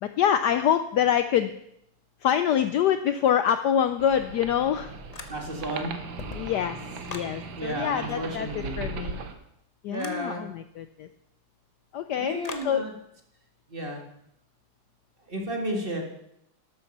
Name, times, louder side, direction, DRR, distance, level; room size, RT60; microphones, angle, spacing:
voice 1, 0.0-1.5 2.2-4.9 6.3-6.8 7.1-9.2 9.8-11.1 11.9-12.4 12.6-12.8, left 9 dB, 85° left, 10 dB, 0.9 m, -25 dB
sound 1, 4.0-9.3, right 4 dB, 65° right, 1.8 m, -38 dB
sound 2, 5.1-5.7 6.0-7.4 9.9-10.2 12.4-12.7, left 3 dB, 60° left, 0.4 m, -40 dB
voice 2, 5.3-5.9 7.6-8.8 9.9-10.4 12.2-12.9 13.7-14.0 15.3-16.0, right 1 dB, 25° right, 1 dB, 1.9 m, -32 dB
12.5 x 8.5 x 5.9 m, 0.77 s
omnidirectional pair, 2.4 m